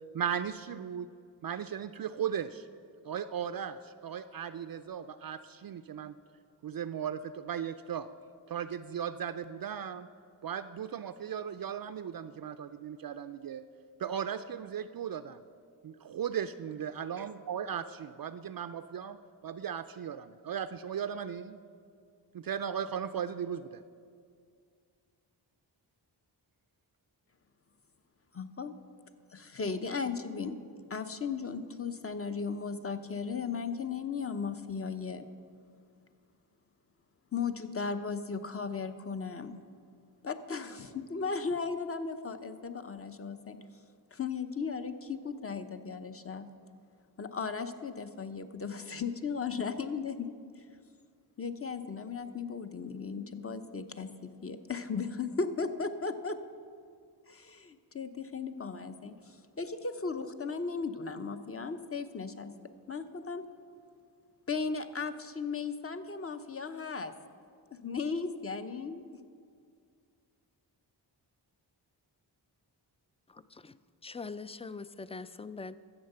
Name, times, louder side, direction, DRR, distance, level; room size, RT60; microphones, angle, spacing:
voice 1, 0.1-1.1 1.4-2.7 3.0-6.1 6.6-8.1 8.5-10.1 10.4-13.6 14.0-15.4 15.8-19.2 19.4-21.6 22.3-23.8, right 8 dB, 55° right, 10 dB, 0.5 m, -37 dB
voice 2, 28.3-28.7 29.3-30.6 30.9-35.3 37.3-39.6 40.2-43.6 44.1-46.5 47.2-50.3 51.4-56.4 57.3-62.5 62.9-63.4 64.5-67.1 67.7-69.0, left 5 dB, 30° left, 9 dB, 0.8 m, -36 dB
voice 3, 74.0-75.8, left 4 dB, 15° left, 14 dB, 0.4 m, -42 dB
13.0 x 8.1 x 6.7 m, 2.2 s
cardioid pair, 65°, 43 cm